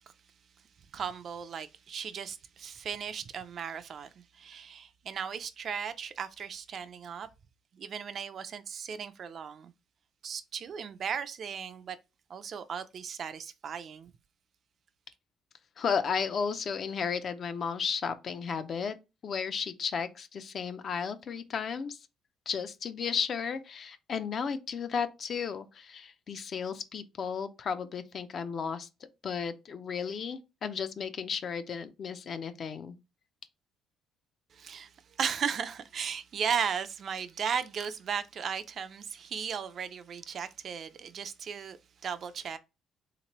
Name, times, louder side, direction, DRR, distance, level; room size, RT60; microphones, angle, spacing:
voice 1, 0.9-7.3 7.7-9.7 10.2-12.0 12.3-14.1 34.5-34.9 35.2-42.6, right 7 dB, 45° right, 0.3 m, -36 dB
voice 2, 15.8-19.0 19.2-22.0 22.5-28.9 29.2-33.0, left 6 dB, 40° left, 0.4 m, -34 dB
3.5 x 2.9 x 2.9 m
cardioid pair, 140°, 0 cm